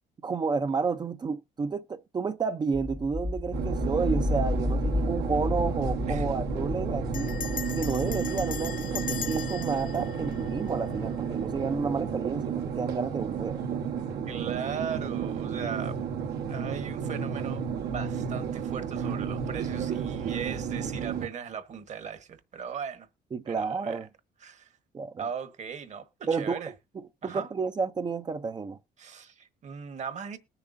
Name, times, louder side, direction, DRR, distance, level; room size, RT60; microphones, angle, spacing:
voice 1, 0.2-7.4 7.7-13.6 23.3-24.1 24.9-25.2 26.3-26.6 27.2-28.8, right 5 dB, 25° right, 0.5 m, -31 dB
sound 1, 2.7-13.4, left 2 dB, 10° left, 0.8 m, -34 dB
sound 2, 3.5-21.3, right 7 dB, 75° right, 1.1 m, -32 dB
Bell, 5.0-5.4 5.6-5.7 6.0-6.3 7.1-11.2, left 9 dB, 50° left, 0.9 m, -39 dB
voice 2, 14.2-16.0 16.5-23.1 23.5-24.0 24.4-24.8 25.2-26.7 27.2-27.5 29.0-30.4, right 7 dB, 45° right, 1.2 m, -38 dB
20.0 x 6.8 x 2.5 m
cardioid pair, 110°, 17 cm